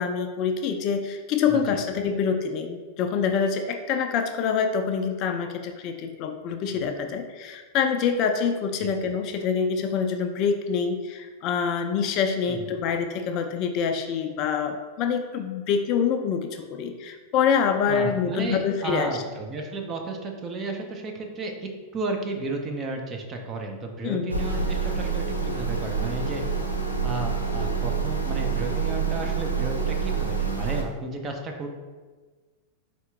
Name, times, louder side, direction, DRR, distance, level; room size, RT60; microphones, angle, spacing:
voice 1, 0.0-19.1 24.0-24.3, left 6 dB, 40° left, 6 dB, 0.4 m, -26 dB
voice 2, 17.9-26.4 27.0-31.7, right 2 dB, 25° right, 2 dB, 0.6 m, -33 dB
sound 1, 24.3-30.8, right 5 dB, 85° left, 0.6 m, -27 dB
4.5 x 3.2 x 3.4 m, 1.4 s
figure-of-eight pair, 90°, 0 cm